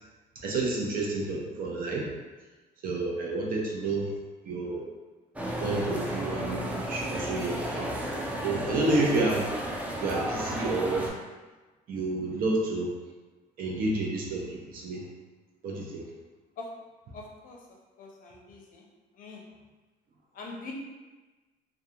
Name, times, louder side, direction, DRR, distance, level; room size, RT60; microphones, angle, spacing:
voice 1, 0.4-2.1 2.8-4.1 4.4-4.9 5.6-7.9 8.4-9.5 10.0-11.1 11.9-12.9 13.6-15.1 15.6-16.0, right 2 dB, 60° right, -2 dB, 0.7 m, -29 dB
sound 1, 5.4-11.1, right 1 dB, 10° right, 0.4 m, -33 dB
voice 2, 17.1-17.6 18.0-18.8 19.2-19.4 20.3-20.7, left 3 dB, 55° left, 0 dB, 0.6 m, -43 dB
2.3 x 2.3 x 2.7 m, 1.2 s
cardioid pair, 110°, 17 cm